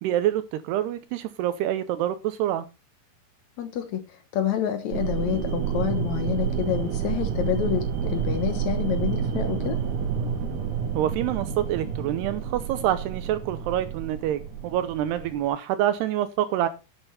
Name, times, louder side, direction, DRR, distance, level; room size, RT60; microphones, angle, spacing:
voice 1, 0.0-2.7 11.0-16.7, right 12 dB, 80° right, 13 dB, 2.5 m, -26 dB
voice 2, 3.6-9.8, left 10 dB, 85° left, 8 dB, 1.6 m, -28 dB
sound 1, 4.9-15.4, right 7 dB, 50° right, 3.0 m, -29 dB
11.0 x 10.0 x 4.1 m, 0.29 s
omnidirectional pair, 5.2 m